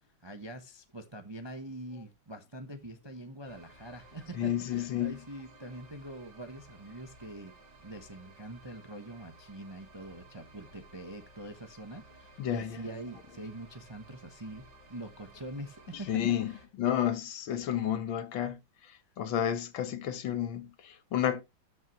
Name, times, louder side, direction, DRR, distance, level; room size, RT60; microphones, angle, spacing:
voice 1, 0.2-7.5 7.8-16.2 16.5-16.6, right 1 dB, 25° right, 0.5 m, -44 dB
sound 1, 3.5-16.7, right 2 dB, 55° right, 2.8 m, -56 dB
voice 2, 4.3-5.2 12.4-12.8 16.1-16.5 16.8-18.6 18.9-21.4, left 10 dB, 80° left, 1.9 m, -31 dB
13.0 x 5.7 x 3.0 m
omnidirectional pair, 2.1 m